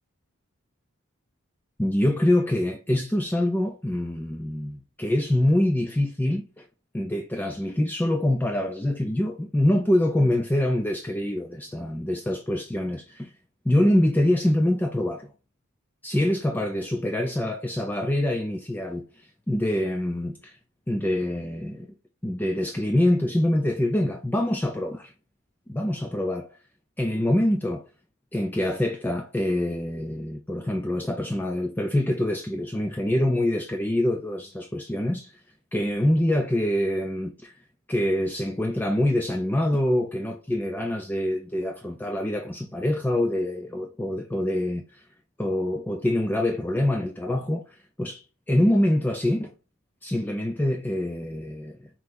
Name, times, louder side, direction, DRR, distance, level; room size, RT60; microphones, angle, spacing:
voice 1, 1.8-6.6 6.9-13.3 13.7-15.3 16.0-19.0 19.5-20.6 20.9-21.9 22.2-25.1 25.7-26.5 27.0-27.9 28.3-35.4 35.7-37.5 37.9-45.0 45.4-47.6 48.0-48.2 48.5-49.5 50.0-51.9, left 1 dB, 10° left, 0.3 m, -25 dB
5.7 x 3.0 x 2.5 m
head